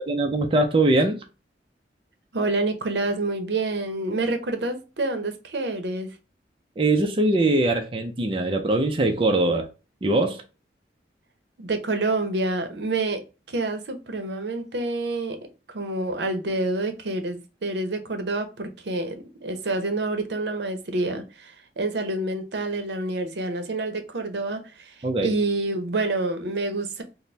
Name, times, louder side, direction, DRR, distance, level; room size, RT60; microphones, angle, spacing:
voice 1, 0.1-1.2 6.8-9.7 10.0-10.4 25.0-25.3, right 2 dB, 30° right, 0.4 m, -22 dB
voice 2, 2.3-6.1 11.6-13.2 13.5-15.4 15.7-19.1 19.4-24.9 25.2-27.0, right 2 dB, 80° right, 0.7 m, -27 dB
4.1 x 2.1 x 3.2 m
head